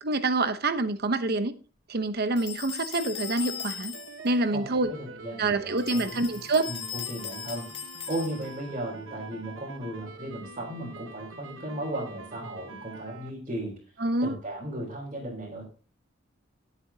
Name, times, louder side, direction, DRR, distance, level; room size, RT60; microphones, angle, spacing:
voice 1, 0.0-1.5 1.9-3.9 4.2-4.9 5.4-6.7 14.0-14.3, right 2 dB, 55° right, 1.0 m, -26 dB
sound 1, 2.4-4.3 5.8-8.7, left 8 dB, 30° left, 2.1 m, -38 dB
sound 2, 3.2-13.3, right 4 dB, 70° right, 1.3 m, -45 dB
voice 2, 4.5-6.4 6.7-7.6 8.1-13.8 14.2-15.6, right 1 dB, 35° right, 3.8 m, -36 dB
18.5 x 8.0 x 2.9 m
head